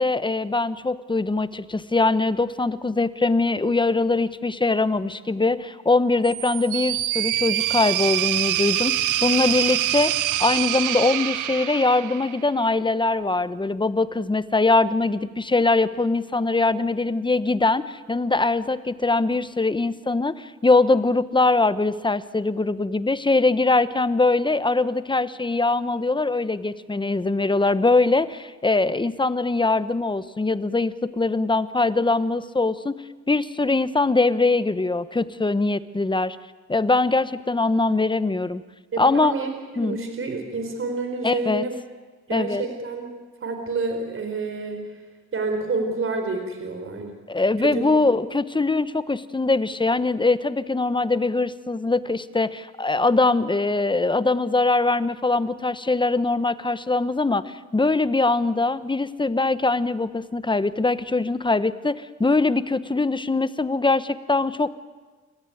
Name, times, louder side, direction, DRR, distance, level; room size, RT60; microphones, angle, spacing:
voice 1, 0.0-33.0 33.3-36.4 36.7-38.6 39.0-39.3 39.8-40.0 41.2-41.6 42.3-42.6 47.3-64.7, left 3 dB, 15° left, 14 dB, 1.0 m, -22 dB
sound 1, 6.2-12.5, right 14 dB, 90° right, 1.0 m, -25 dB
voice 2, 38.9-41.7 42.3-43.1 43.4-44.9 45.3-47.1 47.6-47.9, right 3 dB, 45° right, 5 dB, 4.5 m, -28 dB
29.5 x 14.0 x 9.4 m, 1.4 s
cardioid pair, 90°, 30 cm